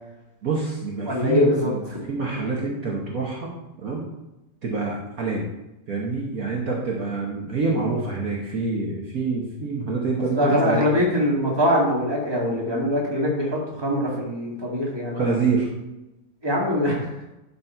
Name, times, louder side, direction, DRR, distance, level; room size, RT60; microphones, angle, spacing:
voice 1, 0.4-3.5 3.8-4.0 4.6-5.4 5.9-10.8 12.6-12.8 15.1-15.7, right 4 dB, 55° right, -3 dB, 1.6 m, -26 dB
voice 2, 1.1-2.0 10.3-15.2 16.4-17.1, left 1 dB, 15° right, -3 dB, 2.1 m, -23 dB
11.5 x 4.4 x 4.6 m, 0.95 s
omnidirectional pair, 1.9 m